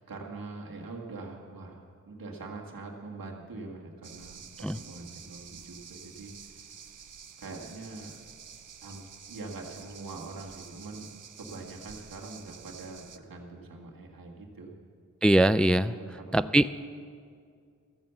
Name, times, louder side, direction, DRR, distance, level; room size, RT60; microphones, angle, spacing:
voice 1, 0.0-6.6 7.4-8.2 8.8-11.1 11.4-14.7 15.9-16.5, right 3 dB, 85° right, 0 dB, 1.8 m, -43 dB
sound 1, 4.0-13.2, right 7 dB, 65° right, 0.7 m, -49 dB
voice 2, 15.2-16.7, right 1 dB, 5° left, 14 dB, 0.3 m, -23 dB
14.0 x 8.8 x 6.9 m, 2.2 s
cardioid pair, 45°, 34 cm